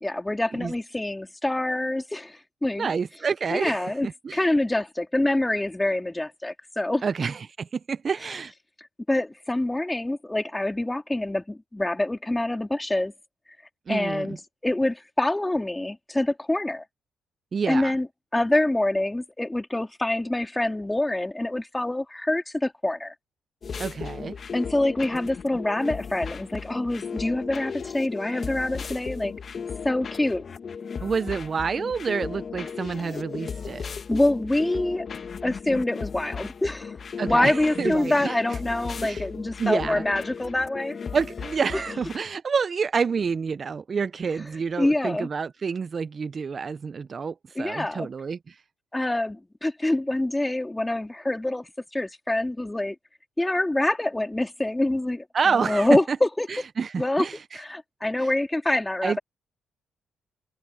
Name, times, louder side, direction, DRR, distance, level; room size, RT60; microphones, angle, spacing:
voice 1, 0.0-2.9 3.5-4.1 4.3-7.0 9.1-13.1 13.9-14.4 14.6-16.8 17.7-18.1 18.3-23.1 24.5-29.3 29.8-30.4 34.1-35.1 35.4-37.0 37.2-41.0 44.8-45.3 47.6-48.1 48.9-53.0 53.4-56.5 57.0-57.3 57.5-59.2, left 1 dB, 15° left, 3.7 m, -26 dB
voice 2, 2.8-4.4 7.0-8.5 13.9-14.4 17.5-17.9 23.8-24.4 31.0-33.8 37.2-38.4 39.0-39.2 39.6-40.0 41.1-48.6 55.3-56.2 56.5-57.6 59.0-59.2, right 5 dB, 45° right, 0.8 m, -28 dB
sound 1, 23.6-42.2, left 6 dB, 50° left, 1.8 m, -36 dB
supercardioid pair, 60°, 0 cm